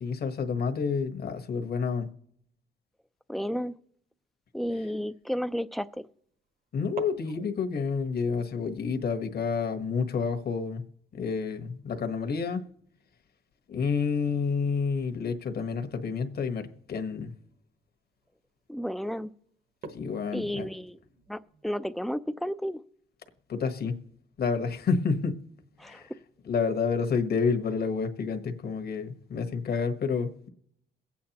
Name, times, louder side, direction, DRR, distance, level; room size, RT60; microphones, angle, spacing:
voice 1, 0.0-2.1 6.7-10.8 11.1-12.6 13.7-17.3 19.9-20.7 23.5-23.9 24.4-25.4 25.8-26.1 26.5-30.5, left 5 dB, 50° left, 1.3 m, -29 dB
voice 2, 3.3-3.7 4.5-6.1 18.7-19.3 20.3-21.0 21.3-22.8 25.8-26.0, equal, ahead, 0.5 m, -32 dB
sound 1, 5.3-5.6 6.8-13.3 13.5-13.6 14.0-14.4 15.4-15.5 16.2-16.3 16.8-16.9 17.3-17.6 18.2-18.6 19.0-19.1 19.7-22.0, right 4 dB, 45° right, 1.1 m, -50 dB
22.5 x 8.5 x 2.9 m
cardioid pair, 90°, 20 cm